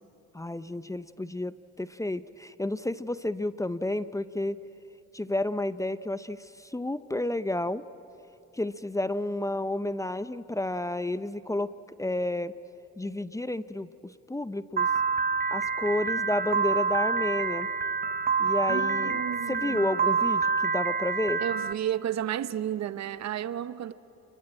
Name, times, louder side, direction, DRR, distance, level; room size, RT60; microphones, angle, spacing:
voice 1, 0.3-4.6 5.1-7.8 8.5-11.7 12.0-12.5 13.0-14.9 15.5-17.7 18.4-19.2 19.5-21.4, left 1 dB, 10° left, 0.6 m, -31 dB
Piano, 14.8-21.7, right 5 dB, 30° right, 0.7 m, -27 dB
voice 2, 18.7-19.9 21.4-23.9, right 10 dB, 60° right, 0.8 m, -32 dB
29.0 x 22.0 x 8.8 m
cardioid pair, 90°, 30 cm